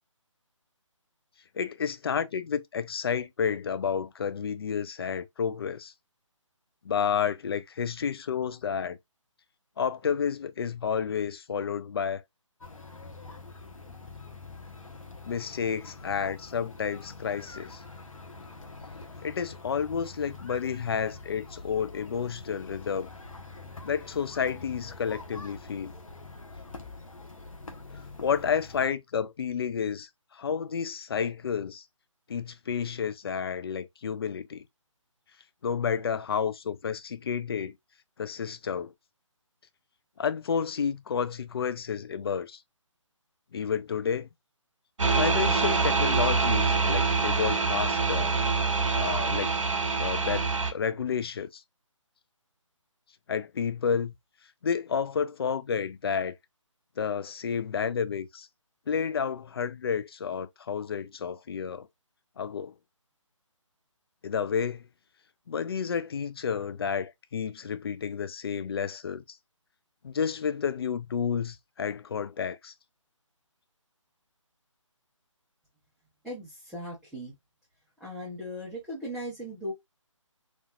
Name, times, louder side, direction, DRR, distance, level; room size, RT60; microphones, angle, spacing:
voice 1, 1.5-5.9 6.8-9.0 9.8-12.2 15.3-17.8 19.2-23.1 23.8-25.9 27.9-31.8 32.3-34.6 35.6-37.7 38.2-38.9 40.2-42.6 43.5-44.3 45.1-48.4 48.9-49.6 50.0-51.6 53.3-54.1 54.6-56.3 57.0-58.5 58.9-61.9 62.4-62.7 64.2-64.8 65.5-69.4 70.0-72.7, left 7 dB, 50° left, 0.5 m, -30 dB
sound 1, 12.6-28.9, left 3 dB, 85° left, 1.2 m, -45 dB
sound 2, 45.0-50.7, right 4 dB, 70° right, 1.1 m, -25 dB
voice 2, 76.2-77.3 78.0-79.7, equal, ahead, 1.1 m, -38 dB
4.2 x 2.9 x 2.3 m
figure-of-eight pair, 155°, 17 cm